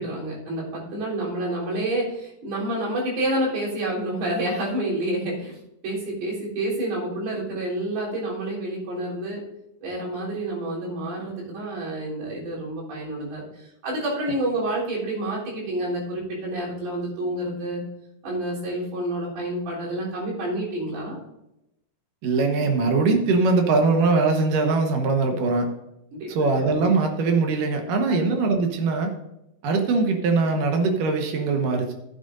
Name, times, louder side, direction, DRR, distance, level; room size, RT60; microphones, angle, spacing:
voice 1, 0.0-5.6 5.8-9.4 9.8-17.8 18.2-21.2 26.2-26.3 28.1-28.2, right 1 dB, 85° right, -5 dB, 5.6 m, -28 dB
voice 2, 22.2-25.7 26.3-29.1 29.6-31.9, right 3 dB, 65° right, 4 dB, 2.6 m, -21 dB
14.0 x 9.2 x 2.6 m, 0.87 s
omnidirectional pair, 4.4 m